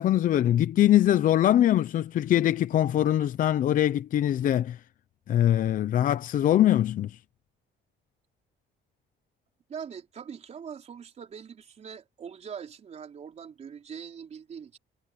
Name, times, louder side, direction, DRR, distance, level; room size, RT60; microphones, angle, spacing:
voice 1, 0.0-4.8 5.3-7.2, left 12 dB, 45° left, 0.6 m, -22 dB
voice 2, 9.7-14.8, right 7 dB, 35° right, 4.0 m, -42 dB
cardioid pair, 170°, 19 cm